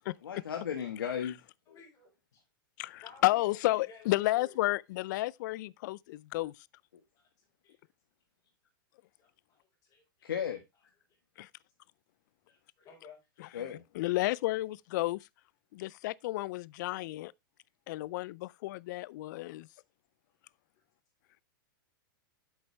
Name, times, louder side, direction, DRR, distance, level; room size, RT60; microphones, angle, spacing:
voice 1, 0.2-1.4 1.7-1.8 10.2-10.6 13.5-13.8, left 8 dB, 85° left, 1.5 m, -35 dB
voice 2, 1.7-2.4 3.0-4.6 7.1-7.3 7.6-7.8 9.2-10.3 12.5-13.4 16.9-17.0, left 5 dB, 30° left, 4.5 m, -56 dB
voice 3, 2.8-6.5 11.4-11.5 13.4-13.5 13.9-15.3 15.7-17.3 17.9-19.7, left 18 dB, 55° left, 0.4 m, -32 dB
8.5 x 8.0 x 3.2 m
hypercardioid pair, 130°, 12 cm